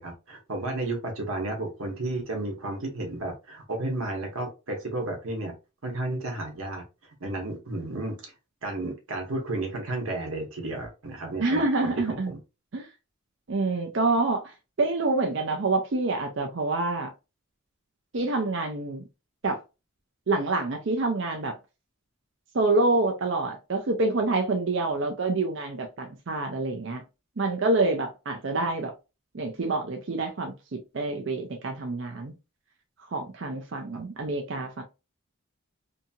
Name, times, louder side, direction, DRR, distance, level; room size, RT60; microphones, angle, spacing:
voice 1, 0.0-5.5 5.8-8.3 8.6-12.4, right 2 dB, 80° right, 1.0 m, -32 dB
voice 2, 11.4-12.3 12.7-12.9 13.5-14.5 14.8-17.1 18.1-19.1 19.4-19.6 20.3-21.6 22.5-27.0 27.4-28.9 29.3-32.3 33.1-34.8, right 2 dB, 60° right, 0.5 m, -27 dB
2.8 x 2.7 x 2.3 m
head